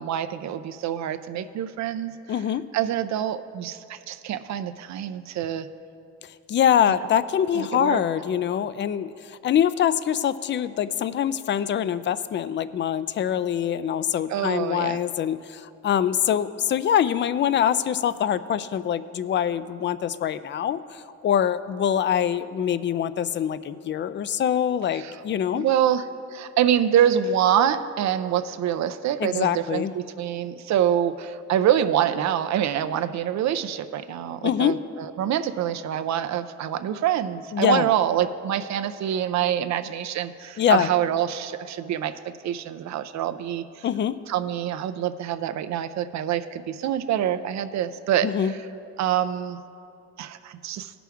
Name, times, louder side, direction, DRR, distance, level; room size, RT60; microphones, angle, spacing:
voice 1, 0.0-2.1 2.7-5.7 7.5-8.0 14.3-15.0 25.0-25.2 25.5-42.1 42.4-43.9 44.3-48.5 49.0-49.6 50.2-50.9, right 10 dB, 65° right, 11 dB, 0.5 m, -25 dB
voice 2, 2.3-2.6 6.5-25.7 29.2-29.9 34.4-34.7 37.5-37.9 40.6-40.9 43.8-44.2 48.2-48.5, left 9 dB, 40° left, 15 dB, 0.4 m, -24 dB
17.0 x 6.0 x 3.5 m, 2.6 s
cardioid pair, 90°, 30 cm